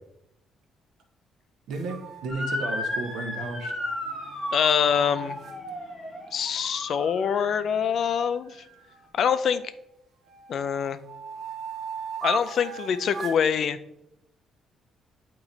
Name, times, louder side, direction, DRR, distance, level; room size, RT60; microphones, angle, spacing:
sound 1, 1.7-5.6 8.5-9.8 10.3-13.5, right 6 dB, 50° right, 0.8 m, -39 dB
voice 1, 1.7-3.7, right 2 dB, 75° right, 4 dB, 1.0 m, -33 dB
Motor vehicle (road) / Siren, 2.3-7.5, left 1 dB, 5° left, 1.5 m, -34 dB
voice 2, 4.5-5.4 6.3-8.7 9.1-9.6 10.5-11.0 12.2-13.8, left 7 dB, 45° left, 13 dB, 0.3 m, -24 dB
8.7 x 3.0 x 3.9 m, 0.83 s
cardioid pair, 165°, 0 cm